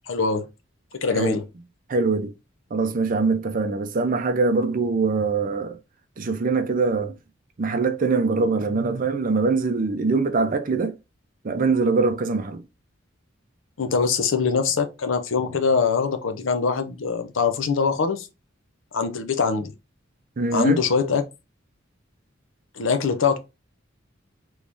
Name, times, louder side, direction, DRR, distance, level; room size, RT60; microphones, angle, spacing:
voice 1, 0.1-0.5 1.0-1.4 13.8-18.3 18.9-19.7 20.5-21.2 22.8-23.4, left 5 dB, 70° left, 0.6 m, -23 dB
voice 2, 1.9-2.3 2.7-5.8 6.2-7.1 7.6-11.0 11.4-12.6 20.4-20.8, right 4 dB, 45° right, 0.5 m, -23 dB
3.4 x 3.1 x 2.6 m
head